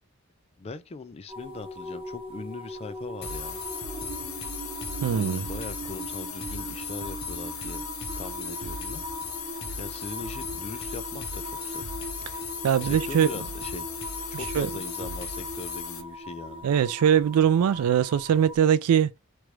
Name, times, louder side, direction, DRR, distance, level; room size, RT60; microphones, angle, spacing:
voice 1, 0.6-3.6 5.0-7.8 8.2-9.0 9.8-11.9 12.8-13.9 14.3-16.7, left 3 dB, 30° left, 0.3 m, -40 dB
sound 1, 1.3-18.6, equal, 25° right, 0.6 m, -39 dB
sound 2, 3.2-16.0, left 5 dB, 75° left, 0.7 m, -36 dB
voice 2, 5.0-5.5 12.6-13.3 14.6-14.7 16.6-19.1, right 8 dB, 85° right, 0.3 m, -21 dB
3.0 x 2.4 x 3.1 m
head